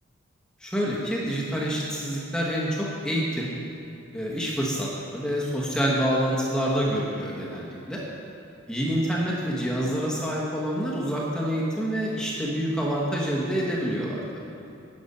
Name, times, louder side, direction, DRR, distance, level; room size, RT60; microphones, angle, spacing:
voice 1, 0.6-3.5 4.1-8.0 8.7-14.4, equal, 5° left, -5 dB, 1.1 m, -27 dB
10.5 x 5.9 x 5.4 m, 2.7 s
head